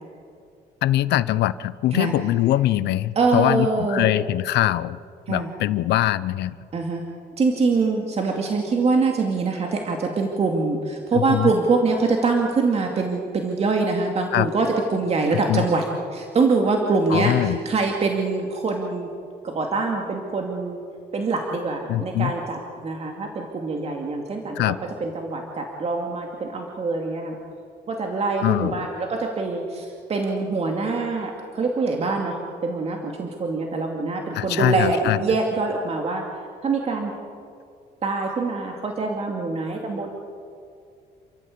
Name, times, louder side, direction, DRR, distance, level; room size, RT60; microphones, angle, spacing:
voice 1, 0.8-5.0 5.3-6.6 11.1-11.5 14.3-14.5 15.5-15.7 17.1-17.6 21.9-22.3 24.6-24.8 28.4-28.9 34.3-35.2, left 14 dB, 80° left, 17 dB, 0.7 m, -22 dB
voice 2, 3.2-4.1 5.3-5.5 6.7-7.0 7.4-15.8 16.1-19.1 19.4-20.8 21.1-24.7 25.0-27.4 27.9-36.2 36.6-37.1 38.0-40.1, right 3 dB, 35° right, 1 dB, 2.4 m, -24 dB
29.0 x 13.5 x 8.5 m, 2.3 s
cardioid pair, 125°, 17 cm